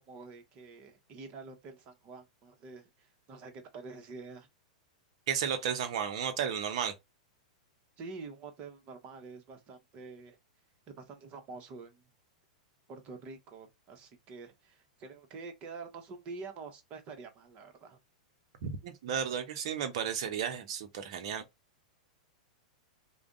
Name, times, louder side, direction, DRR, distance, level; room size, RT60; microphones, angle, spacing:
voice 1, 0.1-4.5 8.0-10.4 10.9-12.0 12.9-18.0, right 4 dB, 35° right, 1.2 m, -47 dB
voice 2, 5.3-6.9 18.6-21.4, right 8 dB, 50° right, 1.0 m, -33 dB
5.0 x 2.4 x 3.6 m
figure-of-eight pair, 95°, 4 cm